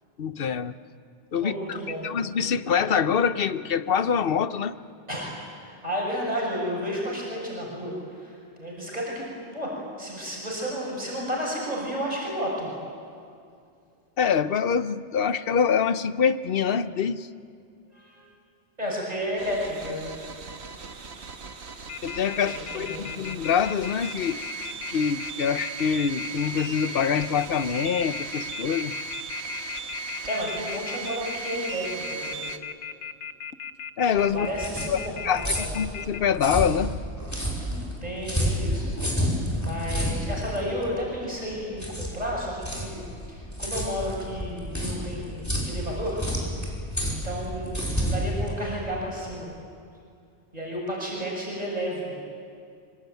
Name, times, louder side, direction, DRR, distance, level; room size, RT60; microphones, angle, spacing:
voice 1, 0.2-0.8 1.3-1.8 2.0-4.8 14.2-17.3 22.0-24.4 24.9-28.9 34.0-34.5 34.9-35.0 35.2-37.0, left 7 dB, 55° left, 13 dB, 1.0 m, -25 dB
voice 2, 1.4-2.1 5.1-12.7 17.9-18.3 18.8-20.1 22.4-23.3 30.3-32.5 34.3-35.8 38.0-38.9 39.6-46.3 47.1-49.5 50.5-52.2, equal, 35° right, -4 dB, 7.0 m, -32 dB
sound 1, 19.4-32.6, right 4 dB, 70° right, 1.6 m, -37 dB
Telephone, 21.9-36.2, left 8 dB, 90° left, 1.1 m, -37 dB
sound 2, 34.1-49.3, equal, 15° left, 5.2 m, -30 dB
25.0 x 24.5 x 9.2 m, 2.4 s
omnidirectional pair, 1.2 m